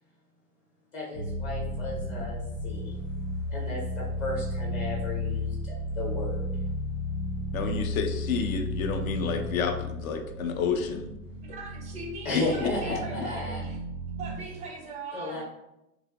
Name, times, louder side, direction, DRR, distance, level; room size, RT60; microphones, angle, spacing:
voice 1, 0.9-3.0 3.5-6.5 12.2-13.6 15.1-15.4, left 1 dB, 35° left, -4 dB, 0.9 m, -34 dB
sound 1, 1.1-14.3, left 1 dB, 75° left, 1.0 m, -33 dB
voice 2, 7.5-11.1 12.3-12.7, left 6 dB, 60° left, 6 dB, 0.5 m, -30 dB
voice 3, 11.4-13.8 14.2-15.4, right 3 dB, 15° right, 0 dB, 0.4 m, -40 dB
3.2 x 2.9 x 2.2 m, 0.89 s
figure-of-eight pair, 90°, 46 cm